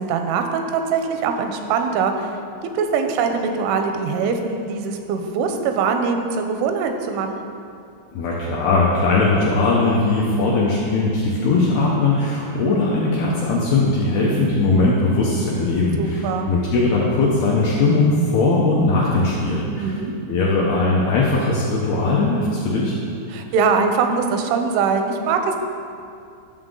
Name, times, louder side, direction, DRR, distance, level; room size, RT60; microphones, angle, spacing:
voice 1, 0.0-2.3 2.7-7.5 16.0-16.5 19.8-20.1 23.3-25.6, right 5 dB, 85° right, 5 dB, 3.1 m, -22 dB
voice 2, 8.1-19.9 20.3-22.9, left 3 dB, 80° left, -5 dB, 2.3 m, -19 dB
12.0 x 6.5 x 3.8 m, 2.4 s
omnidirectional pair, 5.5 m